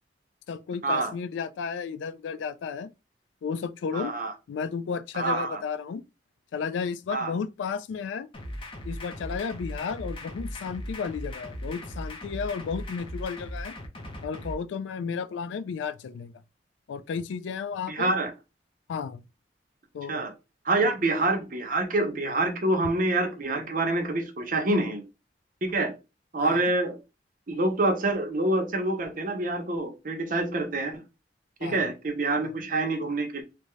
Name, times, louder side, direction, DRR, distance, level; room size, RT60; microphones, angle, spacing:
voice 1, 0.5-2.9 3.4-4.1 4.5-6.0 6.5-8.3 8.8-13.7 14.2-16.3 16.9-18.1 18.9-19.2 19.9-20.3 20.8-20.9 26.4-26.7 31.6-31.9 32.4-32.5, left 6 dB, 90° left, 0.3 m, -33 dB
voice 2, 3.9-4.3 5.1-5.6 7.1-7.3 17.9-18.3 20.1-20.3 20.6-25.0 25.6-25.9 26.3-27.0 27.5-31.0 31.6-33.4, right 2 dB, 45° right, 0.7 m, -26 dB
sound 1, 8.3-14.5, left 1 dB, 30° left, 0.5 m, -38 dB
2.6 x 2.3 x 3.0 m
head